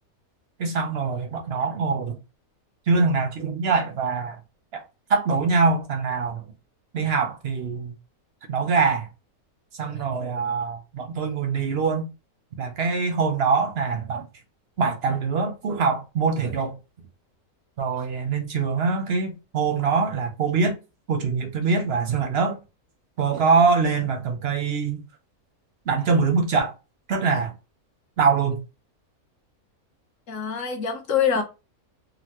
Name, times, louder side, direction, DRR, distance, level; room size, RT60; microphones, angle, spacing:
voice 1, 0.6-2.2 2.9-4.4 4.7-4.8 5.1-6.4 6.9-7.9 8.5-9.1 9.8-12.1 12.6-14.3 14.8-16.7 17.8-20.8 21.1-22.6 23.2-25.0 25.9-26.7 27.1-27.5 28.2-28.6, right 4 dB, 60° right, 0.7 m, -23 dB
voice 2, 30.3-31.4, left 7 dB, 65° left, 1.1 m, -24 dB
3.9 x 2.0 x 2.9 m
omnidirectional pair, 1.6 m